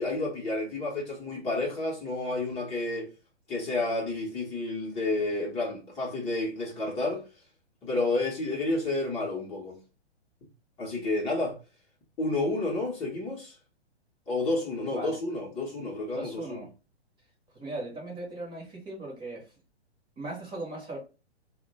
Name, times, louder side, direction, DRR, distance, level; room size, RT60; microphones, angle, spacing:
voice 1, 0.0-3.1 3.5-7.2 7.8-9.8 10.8-11.6 12.2-13.6 14.3-16.6, left 2 dB, 20° left, 0.9 m, -30 dB
voice 2, 16.1-16.7 17.5-19.5 20.2-21.0, right 2 dB, 15° right, 0.9 m, -38 dB
2.8 x 2.2 x 4.0 m
hypercardioid pair, 135°, 34 cm